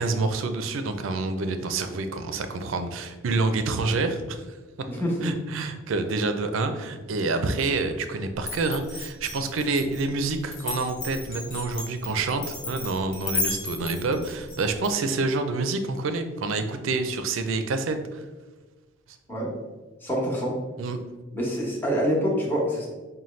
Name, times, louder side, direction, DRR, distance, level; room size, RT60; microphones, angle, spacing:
voice 1, 0.0-4.4 5.2-18.2 20.8-21.0, right 3 dB, 75° right, 8 dB, 0.4 m, -27 dB
voice 2, 4.9-5.3 19.3-19.5 20.0-20.5 21.3-22.9, equal, 10° left, -4 dB, 0.9 m, -26 dB
Glass, 8.4-14.9, left 3 dB, 70° left, 0.9 m, -33 dB
5.5 x 2.2 x 3.1 m, 1.3 s
head